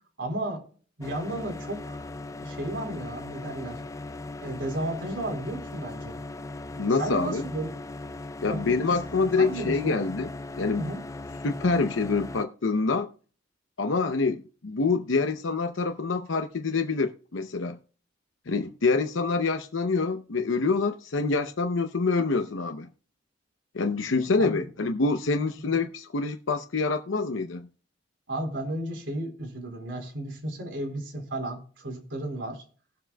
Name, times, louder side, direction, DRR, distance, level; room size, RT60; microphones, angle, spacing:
voice 1, 0.2-0.6 1.0-2.1 2.4-3.8 4.4-6.2 7.0-7.7 8.5-8.7 9.4-10.0 10.8-11.0 24.4-24.6 28.3-32.6, right 1 dB, 70° right, 4.1 m, -33 dB
sound 1, 1.0-12.5, left 2 dB, 15° left, 0.3 m, -39 dB
voice 2, 6.8-7.4 8.4-10.3 10.6-10.9 11.4-13.1 13.8-17.8 18.5-22.9 23.7-27.7, left 4 dB, 85° left, 0.7 m, -26 dB
19.5 x 7.4 x 2.3 m
head